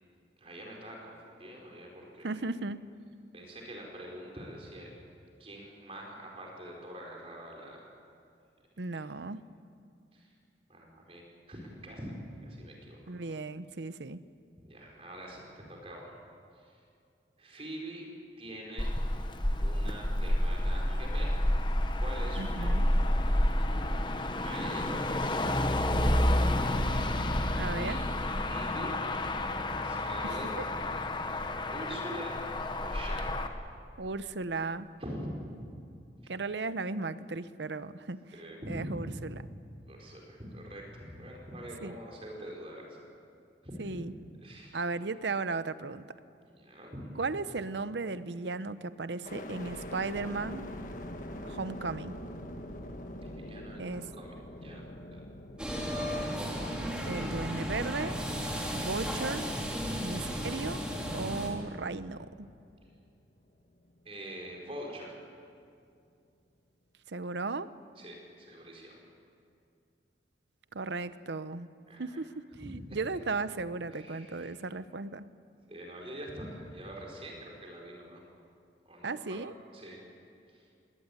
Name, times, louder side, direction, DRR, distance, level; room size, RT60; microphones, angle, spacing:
voice 1, 0.4-2.4 3.3-4.9 5.4-7.9 10.1-10.3 10.7-12.1 12.4-13.0 14.6-16.1 16.5-16.8 17.4-18.1 18.4-18.9 19.6-21.4 22.0-22.8 24.4-27.4 27.7-28.0 28.5-29.1 29.8-30.5 31.7-32.4 32.8-33.4 35.0-35.3 36.2-36.3 38.3-39.3 39.9-43.0 43.6-44.1 44.4-44.8 46.5-47.1 53.2-53.8 54.2-55.2 64.0-65.2 68.0-69.0 71.9-72.2 72.6-73.0 73.9-74.5 75.7-78.2 78.8-79.4 79.7-80.0 80.5-80.7, right 1 dB, 30° right, -1 dB, 5.0 m, -44 dB
voice 2, 2.2-2.8 8.8-9.4 13.1-14.2 22.4-22.9 27.6-28.0 30.2-30.3 34.0-34.9 36.3-38.2 38.7-39.4 41.8-41.9 43.8-44.1 44.7-46.1 47.2-50.7 51.4-52.1 53.8-54.1 57.1-58.2 58.7-59.4 60.0-60.8 61.1-62.5 67.1-67.7 70.7-71.7 72.0-75.2 79.0-79.5, right 3 dB, 80° right, 14 dB, 0.8 m, -36 dB
Motor vehicle (road), 18.8-33.5, left 1 dB, 25° left, 1.1 m, -29 dB
sound 1, 49.2-63.2 63.8-64.5, left 1 dB, 45° left, 1.7 m, -45 dB
sound 2, 55.6-61.5, equal, 5° right, 3.2 m, -34 dB
21.0 x 18.0 x 9.7 m, 2.4 s
head